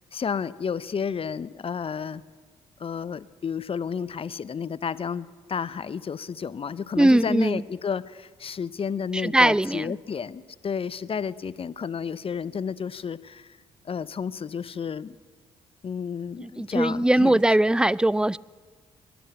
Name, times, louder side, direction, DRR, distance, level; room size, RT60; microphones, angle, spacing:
voice 1, 0.0-2.2 2.8-13.6 13.8-15.2 15.8-17.4, left 6 dB, 40° left, 0.6 m, -31 dB
voice 2, 7.0-7.6 9.1-10.0 16.4-18.4, right 1 dB, 5° right, 0.3 m, -20 dB
20.5 x 7.9 x 8.0 m
hypercardioid pair, 50°, 15 cm